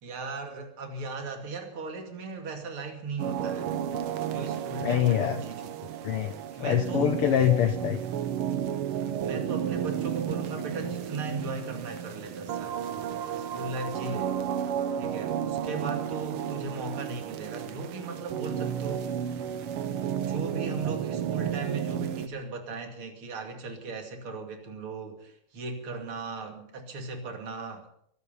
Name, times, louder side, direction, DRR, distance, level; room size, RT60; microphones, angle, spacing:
voice 1, 0.0-3.8 4.3-5.7 6.6-7.3 9.2-12.8 13.3-14.4 15.0-19.1 20.2-27.9, right 3 dB, 45° right, 4 dB, 3.2 m, -37 dB
sound 1, 3.2-22.3, right 9 dB, 65° right, 1.4 m, -32 dB
voice 2, 4.8-5.4 6.0-8.0, left 11 dB, 70° left, 8 dB, 1.4 m, -25 dB
23.5 x 11.0 x 5.6 m, 0.67 s
omnidirectional pair, 3.4 m